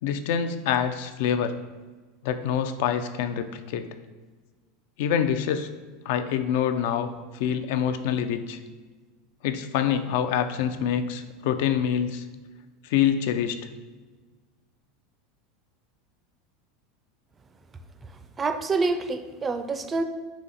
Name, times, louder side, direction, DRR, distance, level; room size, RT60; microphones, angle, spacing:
voice 1, 0.0-1.6 2.2-3.9 5.0-5.7 6.1-7.1 7.3-8.6 9.4-12.2 12.8-13.6, left 8 dB, 70° left, 9 dB, 0.3 m, -26 dB
voice 2, 18.4-20.0, right 3 dB, 25° right, 7 dB, 0.4 m, -27 dB
4.2 x 2.8 x 3.9 m, 1.3 s
supercardioid pair, 110°, 0 cm